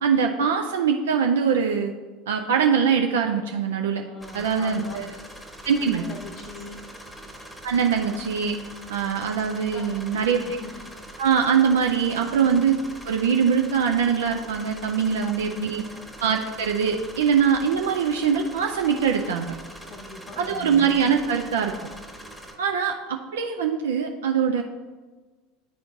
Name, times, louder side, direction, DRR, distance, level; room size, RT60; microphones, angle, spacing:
voice 1, 0.0-1.9 2.3-4.0 4.3-5.0 5.6-6.0 7.6-8.6 8.9-10.4 11.2-12.8 13.0-15.8 16.2-19.5 20.4-21.7 22.6-24.6, right 7 dB, 70° right, 3 dB, 0.3 m, -22 dB
voice 2, 3.9-5.0 5.8-6.8 9.6-10.8 11.1-11.3 11.9-12.6 15.2-15.3 15.8-16.1 19.9-20.9, left 3 dB, 40° left, 4 dB, 0.7 m, -41 dB
sound 1, 4.2-22.6, right 1 dB, ahead, 1.1 m, -43 dB
9.7 x 4.3 x 2.7 m, 1.3 s
figure-of-eight pair, 75°, 0 cm